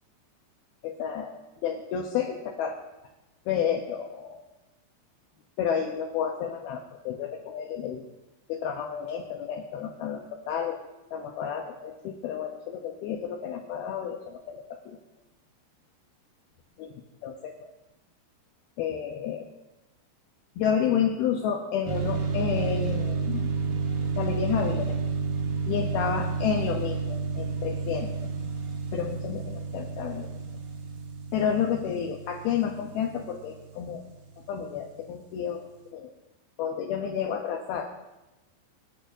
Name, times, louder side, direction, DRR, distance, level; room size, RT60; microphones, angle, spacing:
voice 1, 0.8-1.3 1.6-2.8 3.5-4.4 5.6-8.0 8.5-10.8 11.1-15.0 16.8-16.9 17.2-17.7 18.8-19.5 20.6-23.5 24.1-25.0 25.7-28.1 28.9-30.3 31.3-34.0 34.5-35.6 35.9-36.1 36.6-37.9, left 8 dB, 80° left, 2 dB, 2.3 m, -30 dB
sound 1, 21.9-34.3, right 4 dB, 65° right, 3.1 m, -31 dB
25.0 x 11.0 x 2.6 m, 1.0 s
omnidirectional pair, 5.3 m